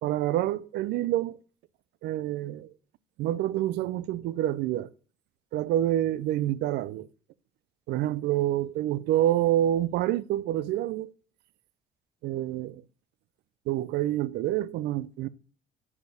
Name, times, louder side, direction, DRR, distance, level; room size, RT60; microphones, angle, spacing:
voice 1, 0.0-1.4 2.0-2.7 3.2-4.9 5.5-7.1 7.9-11.1 12.2-12.8 13.7-15.3, right 13 dB, 80° right, 0.5 m, -27 dB
6.8 x 6.6 x 7.0 m
cardioid pair, 110°, 17 cm